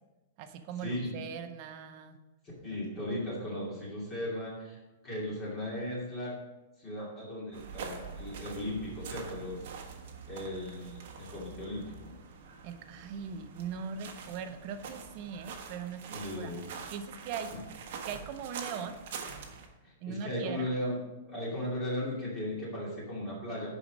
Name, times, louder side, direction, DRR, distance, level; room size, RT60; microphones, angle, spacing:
voice 1, 0.4-2.2 2.7-2.8 12.6-16.5 16.9-17.5 18.0-18.9 20.0-20.7, right 7 dB, 30° right, 8 dB, 0.7 m, -40 dB
voice 2, 2.6-6.3 6.8-9.7 10.3-12.1 16.1-16.6 17.5-17.6 19.8-21.0 21.3-23.8, left 1 dB, 20° left, -5 dB, 2.5 m, -37 dB
sound 1, 7.5-19.7, right 6 dB, 50° right, 1.3 m, -45 dB
11.0 x 5.0 x 5.2 m, 1.1 s
supercardioid pair, 175°, 0 cm